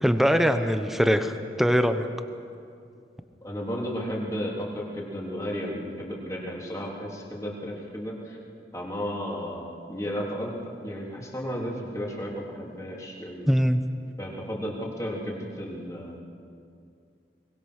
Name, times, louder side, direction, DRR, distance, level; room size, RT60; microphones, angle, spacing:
voice 1, 0.0-2.1 13.5-13.8, equal, ahead, 8 dB, 0.9 m, -22 dB
voice 2, 3.4-8.4 8.7-13.5 14.2-16.2, equal, 20° left, -3 dB, 3.5 m, -33 dB
23.0 x 20.0 x 6.5 m, 2.4 s
head